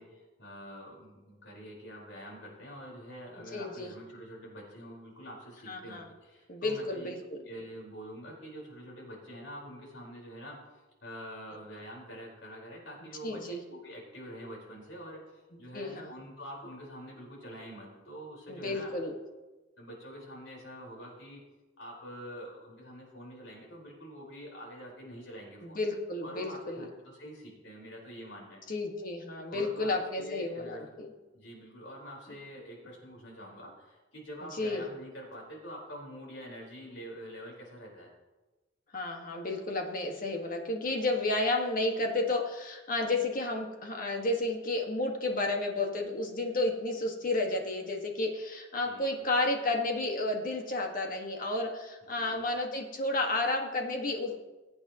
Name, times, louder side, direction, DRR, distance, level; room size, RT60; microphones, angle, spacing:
voice 1, 0.0-7.1 7.4-18.9 19.8-21.4 21.8-25.8 26.2-28.6 29.5-30.9 31.3-38.1 48.8-49.1 52.0-52.4, equal, 85° left, -2 dB, 4.6 m, -46 dB
voice 2, 3.3-3.9 5.7-6.1 6.5-7.4 13.2-13.6 15.7-16.1 18.5-19.1 25.6-26.8 28.7-31.1 34.6-34.8 38.9-54.4, left 2 dB, 45° left, 2 dB, 1.6 m, -32 dB
21.5 x 8.6 x 3.0 m, 1.2 s
head